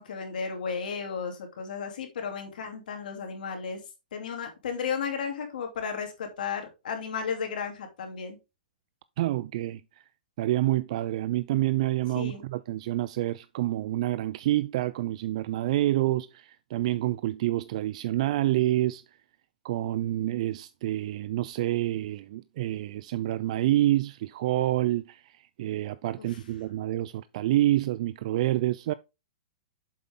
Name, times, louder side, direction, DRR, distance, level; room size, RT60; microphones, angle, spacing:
voice 1, 0.0-3.8 4.1-8.4 12.1-12.4 26.2-26.4, left 6 dB, 70° left, 2.6 m, -34 dB
voice 2, 9.2-9.8 10.4-19.0 19.6-25.3 25.6-28.9, right 15 dB, 50° right, 0.3 m, -27 dB
7.5 x 5.7 x 3.7 m
hypercardioid pair, 150°, 5 cm